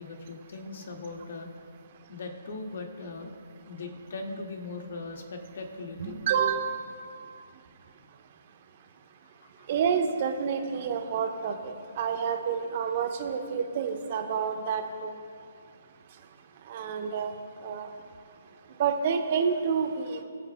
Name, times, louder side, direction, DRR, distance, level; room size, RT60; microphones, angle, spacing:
voice 1, 0.0-1.5 2.1-3.3 3.7-6.2 9.4-9.7, left 3 dB, 55° left, 2 dB, 1.8 m, -39 dB
voice 2, 6.0-6.8 9.7-15.1 16.7-17.3 17.6-17.9 18.8-20.2, right 6 dB, 40° right, 5 dB, 1.2 m, -29 dB
23.5 x 8.1 x 2.2 m, 2.3 s
figure-of-eight pair, 140°, 0 cm